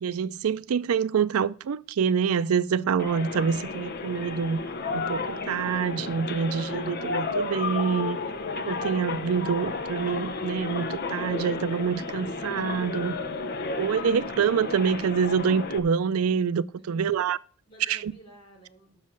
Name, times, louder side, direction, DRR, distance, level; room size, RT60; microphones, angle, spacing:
voice 1, 0.0-4.6 4.9-8.2 8.6-13.1 13.8-17.4 17.9-18.1, right 6 dB, 85° right, 0.4 m, -26 dB
sound 1, 3.0-15.8, left 3 dB, 45° left, 0.8 m, -32 dB
voice 2, 16.7-17.3 17.7-19.0, right 1 dB, 25° left, 3.7 m, -52 dB
7.4 x 6.4 x 7.4 m
head